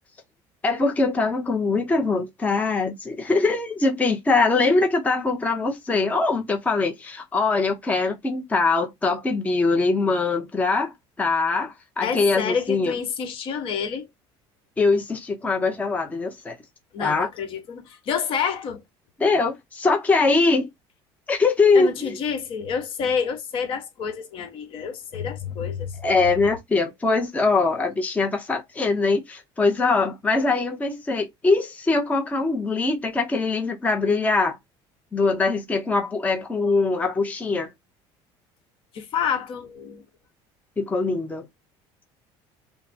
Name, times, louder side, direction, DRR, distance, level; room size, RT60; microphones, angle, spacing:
voice 1, 0.6-12.9 14.8-16.6 17.0-17.3 19.2-20.7 21.3-22.2 26.0-34.6 35.1-37.7 40.8-41.4, left 3 dB, 15° left, 0.6 m, -22 dB
voice 2, 12.0-14.1 16.9-18.8 21.7-26.0 38.9-40.0, left 6 dB, 55° left, 1.1 m, -28 dB
5.5 x 2.0 x 2.7 m
cardioid pair, 125°, 11 cm